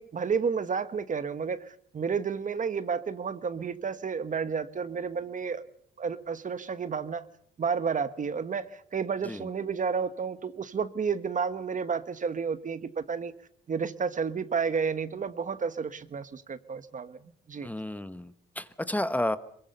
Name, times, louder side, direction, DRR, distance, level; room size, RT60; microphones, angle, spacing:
voice 1, 0.0-5.6 6.0-7.3 7.6-13.3 13.7-17.2 17.5-17.7, right 6 dB, 40° right, 13 dB, 1.2 m, -31 dB
voice 2, 17.6-19.4, left 1 dB, 10° left, 12 dB, 1.2 m, -31 dB
22.5 x 22.0 x 6.8 m, 0.64 s
cardioid pair, 90°, 20 cm